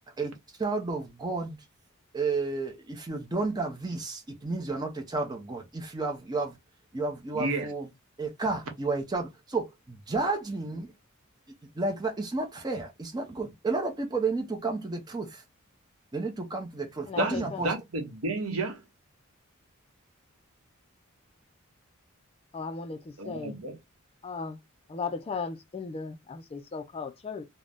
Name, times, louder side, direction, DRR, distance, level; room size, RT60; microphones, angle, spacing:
voice 1, 0.6-1.6 2.1-6.6 6.9-7.9 8.2-10.9 11.7-15.4 16.1-17.7, right 3 dB, 20° right, 0.6 m, -31 dB
voice 2, 7.3-7.7 17.2-18.8 23.2-23.8, right 2 dB, 85° right, 0.8 m, -31 dB
voice 3, 17.1-17.6 22.5-23.6 24.2-24.6 24.9-27.5, left 5 dB, 30° left, 0.3 m, -36 dB
2.5 x 2.0 x 3.3 m
head